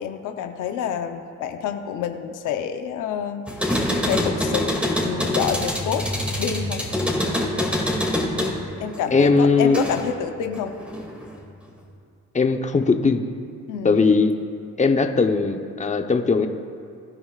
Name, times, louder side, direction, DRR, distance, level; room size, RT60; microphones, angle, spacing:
voice 1, 0.0-3.8 4.0-6.1 6.4-6.9 8.8-10.8 13.7-14.1, left 8 dB, 90° left, 6 dB, 0.8 m, -28 dB
sound 1, 3.5-10.2 10.5-11.4, left 1 dB, 5° right, 2.4 m, -25 dB
voice 2, 9.1-9.8 12.3-13.2 13.8-14.3 14.8-16.5, left 4 dB, 25° left, 5 dB, 0.9 m, -19 dB
22.5 x 11.0 x 2.5 m, 2.4 s
cardioid pair, 90°, 30 cm